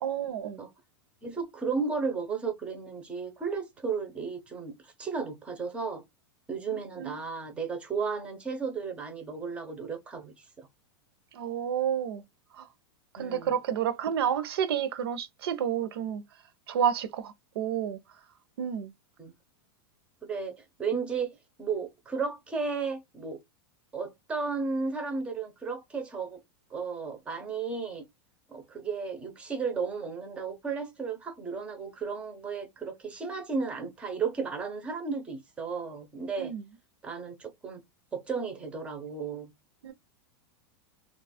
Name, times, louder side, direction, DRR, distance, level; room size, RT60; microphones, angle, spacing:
voice 1, 0.0-0.6 7.0-7.2 11.3-12.2 12.5-12.7 13.1-16.2 16.7-18.0 18.6-18.9 36.4-36.6 39.8-39.9, right 9 dB, 70° right, 0.6 m, -30 dB
voice 2, 1.2-6.0 6.5-10.7 13.2-13.6 19.2-19.3 20.2-23.4 23.9-26.4 26.7-28.0 28.5-36.5 37.0-37.8 38.1-39.5, right 5 dB, 10° right, 0.5 m, -34 dB
2.8 x 2.3 x 4.1 m
supercardioid pair, 180°, 13 cm